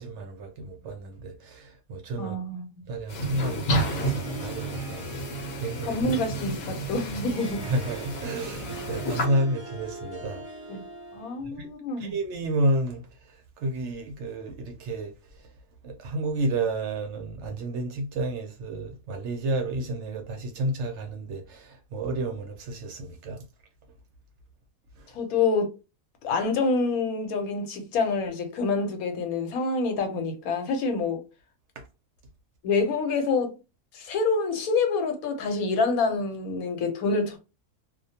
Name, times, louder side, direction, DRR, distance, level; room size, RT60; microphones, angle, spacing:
voice 1, 0.0-2.4 2.9-5.2 5.6-5.9 7.7-10.4 11.6-11.7 12.0-13.0 13.6-15.1 15.8-23.4 31.8-31.9, right 1 dB, 65° right, 0.8 m, -31 dB
voice 2, 2.2-2.8 5.8-7.7 9.4-9.5 10.7-10.8 11.1-12.2 25.1-25.7 26.2-31.2 32.6-33.6 33.9-37.4, left 3 dB, 85° left, 1.1 m, -27 dB
sound 1, 3.1-9.3, right 1 dB, 65° left, 0.9 m, -31 dB
Harp, 3.5-11.4, right 2 dB, 30° right, 0.7 m, -42 dB
2.4 x 2.2 x 2.7 m
omnidirectional pair, 1.5 m